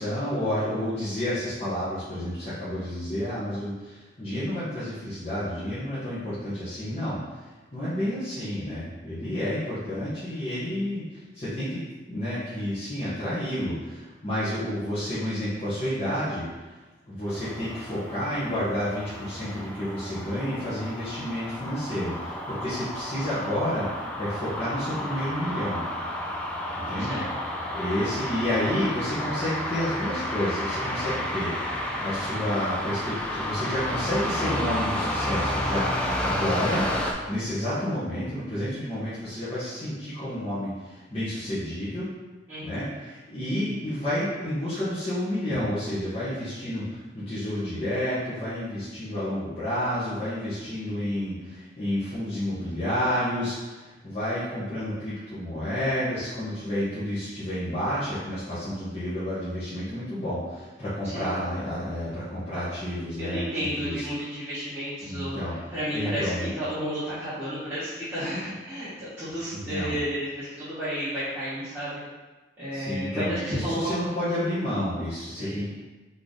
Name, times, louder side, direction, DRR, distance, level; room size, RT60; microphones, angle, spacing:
voice 1, 0.0-7.2 7.7-11.8 12.1-16.5 17.1-25.8 26.9-27.2 27.7-35.9 36.2-36.9 37.3-42.1 42.6-64.0 65.0-65.5 65.9-66.5 69.5-70.0 72.7-75.7, left 1 dB, 30° left, -14 dB, 1.2 m, -30 dB
sound 1, 17.3-37.1, left 1 dB, 5° left, 0.4 m, -31 dB
voice 2, 27.0-27.6 42.5-42.8 61.0-61.4 63.2-72.0 72.6-74.0 75.4-75.6, equal, 10° right, -16 dB, 1.3 m, -32 dB
3.8 x 3.4 x 3.9 m, 1.2 s
head